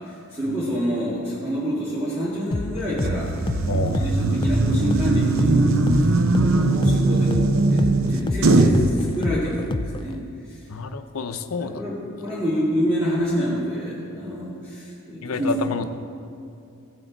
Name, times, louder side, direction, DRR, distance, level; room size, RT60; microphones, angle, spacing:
voice 1, 0.0-10.2 11.6-15.5, equal, 15° right, -10 dB, 2.0 m, -27 dB
sound 1, 2.5-10.2, left 2 dB, 20° left, 0.4 m, -29 dB
sound 2, 3.0-8.9, right 2 dB, 65° right, 0.6 m, -20 dB
voice 2, 3.7-4.4 9.0-9.3 10.7-11.8 15.2-15.8, left 4 dB, 80° left, 9 dB, 0.7 m, -30 dB
16.5 x 7.7 x 4.0 m, 2.6 s
head